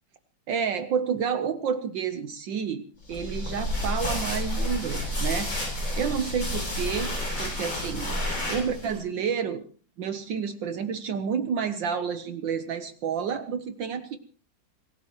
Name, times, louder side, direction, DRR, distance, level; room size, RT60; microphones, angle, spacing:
voice 1, 0.5-2.8 3.1-5.5 6.0-7.1 7.4-8.1 8.5-9.6 10.0-14.2, right 7 dB, 70° right, 9 dB, 1.6 m, -29 dB
sound 1, 3.1-9.0, left 1 dB, 85° left, 8.7 m, -30 dB
26.0 x 17.0 x 3.0 m, 0.41 s
omnidirectional pair, 2.2 m